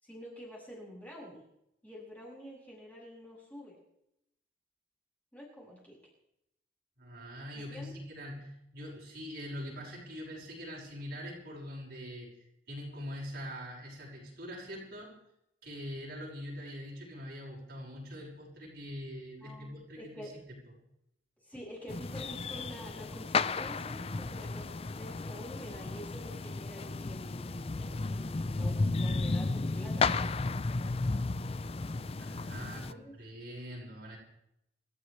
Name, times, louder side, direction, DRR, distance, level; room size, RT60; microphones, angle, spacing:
voice 1, 0.0-1.4 1.8-3.8 5.3-6.0 7.5-7.9 19.4-20.4 21.4-30.2 32.5-33.1, equal, 10° left, -5 dB, 7.5 m, -47 dB
voice 2, 7.0-12.3 12.7-15.2 15.6-20.6 32.2-34.2, equal, 60° right, -4 dB, 6.2 m, -43 dB
sound 1, 21.9-32.9, left 3 dB, 35° left, 0.5 m, -33 dB
27.5 x 13.5 x 3.4 m, 0.79 s
head